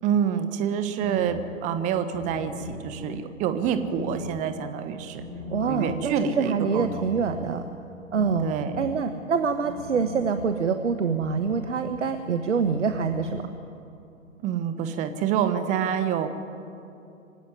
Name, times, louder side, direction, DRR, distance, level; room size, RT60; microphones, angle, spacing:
voice 1, 0.0-5.2 5.7-6.9 8.4-9.0 14.4-16.3, right 8 dB, 20° right, 10 dB, 1.3 m, -27 dB
sound 1, 1.0-13.7, left 1 dB, 80° right, 4.3 m, -40 dB
voice 2, 5.5-7.6 8.1-8.5 8.8-13.4, right 5 dB, 60° right, 8 dB, 1.5 m, -25 dB
25.0 x 17.0 x 9.7 m, 2.7 s
figure-of-eight pair, 120°, 41 cm